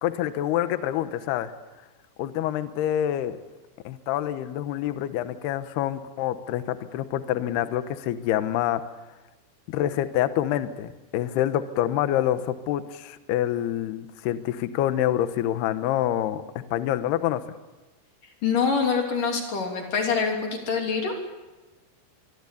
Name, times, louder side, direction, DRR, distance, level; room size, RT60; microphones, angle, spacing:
voice 1, 0.0-1.5 2.2-3.4 3.8-8.8 9.7-16.4 16.7-17.4, left 12 dB, 70° left, 11 dB, 2.7 m, -26 dB
voice 2, 18.4-21.2, left 5 dB, 45° left, 2 dB, 4.3 m, -25 dB
24.0 x 23.5 x 8.5 m, 1.1 s
omnidirectional pair, 5.6 m